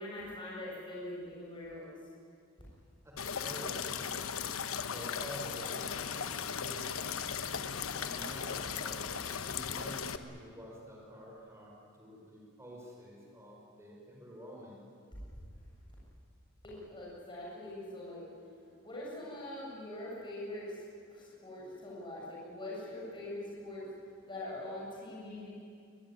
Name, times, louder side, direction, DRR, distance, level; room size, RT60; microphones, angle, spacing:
voice 1, 0.0-1.9 16.6-18.3 18.8-23.9 24.3-25.5, left 1 dB, 25° left, -6 dB, 7.1 m, -43 dB
voice 2, 3.0-4.1 4.9-7.3 7.9-9.2 9.4-11.7 12.0-14.8, equal, 15° right, -3 dB, 5.0 m, -48 dB
sound 1, 3.2-10.2, left 7 dB, 75° left, 1.1 m, -37 dB
24.0 x 21.0 x 9.8 m, 2.3 s
head